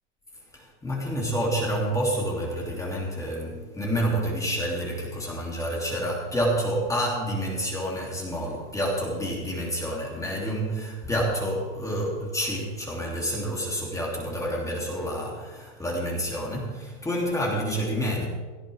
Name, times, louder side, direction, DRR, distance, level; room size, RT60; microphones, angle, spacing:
voice 1, 0.5-18.3, equal, 10° left, -3 dB, 3.1 m, -28 dB
17.5 x 13.0 x 3.6 m, 1.4 s
hypercardioid pair, 120°, 36 cm